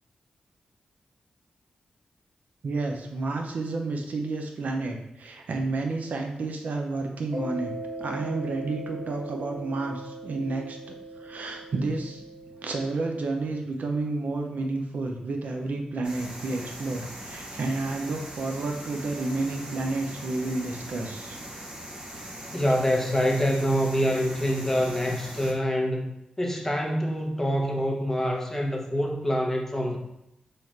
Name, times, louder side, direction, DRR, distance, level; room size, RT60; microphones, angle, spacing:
voice 1, 2.6-7.7 8.0-21.4, right 3 dB, 70° right, 3 dB, 0.5 m, -31 dB
Mallet percussion, 7.3-13.7, right 1 dB, 90° right, 0.8 m, -40 dB
sound 1, 16.0-25.5, right 1 dB, 35° right, 0.8 m, -41 dB
voice 2, 22.5-26.1 26.4-30.0, equal, 10° left, 1 dB, 0.7 m, -25 dB
3.2 x 2.4 x 4.2 m, 0.85 s
cardioid pair, 80°, 3 cm